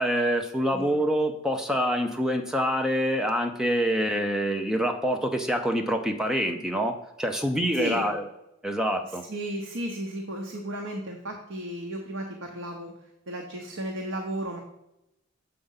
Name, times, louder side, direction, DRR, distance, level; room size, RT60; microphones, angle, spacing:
voice 1, 0.0-8.2 8.6-9.2, equal, 5° right, 4 dB, 0.6 m, -26 dB
voice 2, 7.7-8.1 9.3-12.9 13.3-14.6, right 1 dB, 75° right, 1 dB, 0.9 m, -34 dB
7.0 x 5.2 x 5.5 m, 0.89 s
head